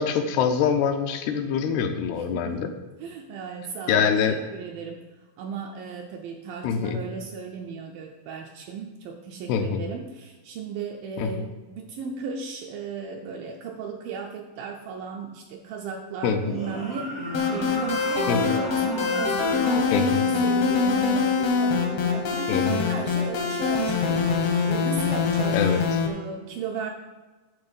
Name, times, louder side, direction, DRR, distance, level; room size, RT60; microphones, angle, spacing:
voice 1, 0.0-2.7 3.9-4.4 6.6-7.0 9.5-9.8 11.2-11.5 16.2-16.6 18.3-18.5 19.9-20.2 22.5-22.8 25.5-25.8, left 7 dB, 85° left, 6 dB, 2.7 m, -24 dB
voice 2, 2.2-2.7 3.0-5.1 5.4-20.2 20.4-22.5 22.9-26.9, right 5 dB, 80° right, 2 dB, 2.1 m, -36 dB
sound 1, 16.3-25.3, left 3 dB, 50° left, 1.0 m, -38 dB
sound 2, 16.4-19.8, equal, 20° right, 0.5 m, -37 dB
sound 3, 17.3-26.1, left 5 dB, 65° left, 1.6 m, -24 dB
9.9 x 3.8 x 7.1 m, 1.2 s
omnidirectional pair, 4.6 m